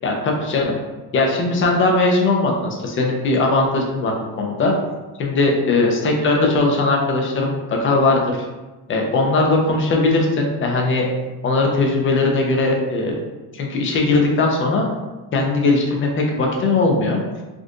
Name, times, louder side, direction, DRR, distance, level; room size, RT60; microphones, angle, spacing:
voice 1, 0.0-0.7 1.1-4.8 5.2-8.4 8.9-11.1 11.4-13.1 13.5-14.9 15.3-17.2, left 3 dB, 25° left, 0 dB, 0.5 m, -19 dB
3.6 x 2.6 x 2.4 m, 1.2 s
cardioid pair, 115°, 48 cm